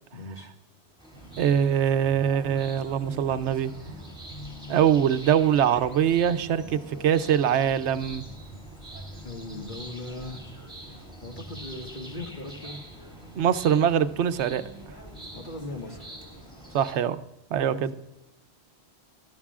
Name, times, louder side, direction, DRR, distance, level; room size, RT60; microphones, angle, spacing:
voice 1, 0.1-0.5 9.2-10.4 11.2-12.8 15.3-16.1 17.7-17.9, left 2 dB, 50° left, 1 dB, 1.9 m, -38 dB
sound 1, 1.0-16.9, right 1 dB, 5° right, 3.5 m, -47 dB
sound 2, 1.1-16.9, equal, 20° left, 3.4 m, -46 dB
voice 2, 1.4-3.7 4.7-8.2 13.3-14.6 16.7-17.2 17.5-17.9, right 9 dB, 90° right, 11 dB, 0.9 m, -23 dB
19.5 x 12.5 x 2.4 m, 0.97 s
omnidirectional pair, 1.1 m